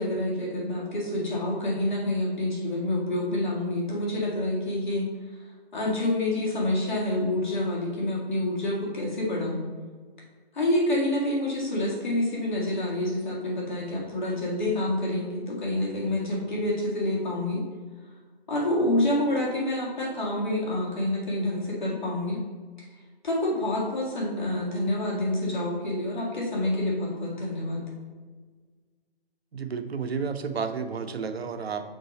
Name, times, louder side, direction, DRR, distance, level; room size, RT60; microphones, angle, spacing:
voice 1, 0.0-5.1 5.7-9.6 10.5-17.6 18.5-22.4 23.2-27.8, left 1 dB, 50° left, -5 dB, 1.9 m, -27 dB
voice 2, 29.5-31.8, right 5 dB, 75° right, 8 dB, 0.7 m, -31 dB
7.1 x 3.8 x 4.0 m, 1.4 s
hypercardioid pair, 180°, 31 cm